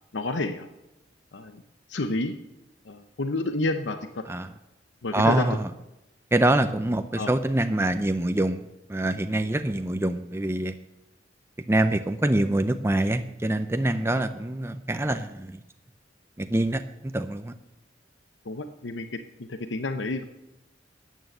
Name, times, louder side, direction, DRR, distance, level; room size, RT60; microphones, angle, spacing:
voice 1, 0.1-0.7 1.3-1.6 1.9-2.4 2.9-4.2 5.0-5.5 7.2-7.3 18.5-19.1 19.4-20.2, left 2 dB, 85° left, 8 dB, 0.8 m, -29 dB
voice 2, 5.1-5.7 6.3-8.6 8.9-10.7 11.7-15.6 16.4-17.5, right 1 dB, 15° right, 8 dB, 0.5 m, -25 dB
12.5 x 9.2 x 7.8 m, 0.94 s
head